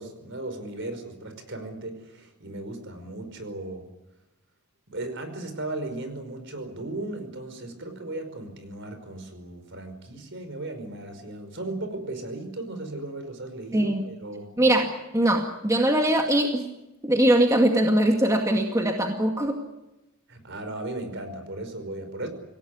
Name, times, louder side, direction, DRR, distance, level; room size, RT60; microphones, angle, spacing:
voice 1, 0.0-3.9 4.9-14.5 20.3-22.3, right 2 dB, 55° right, 8 dB, 5.2 m, -36 dB
voice 2, 14.6-16.7 17.0-19.6, right 1 dB, 15° right, 2 dB, 2.1 m, -22 dB
27.0 x 17.5 x 9.7 m, 0.97 s
head